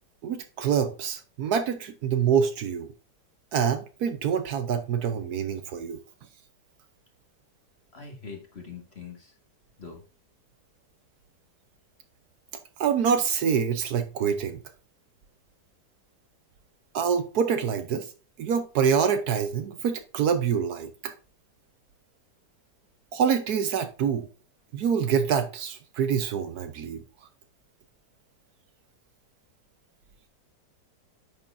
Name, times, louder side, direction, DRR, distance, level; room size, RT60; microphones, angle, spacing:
voice 1, 0.2-2.9 3.5-6.0 12.8-14.6 16.9-18.1 18.4-21.1 23.1-24.3 24.7-27.0, right 7 dB, 70° right, 1.2 m, -26 dB
voice 2, 7.9-9.3 9.8-10.0, left 5 dB, 40° left, 1.9 m, -42 dB
9.6 x 6.3 x 2.6 m
omnidirectional pair, 1.8 m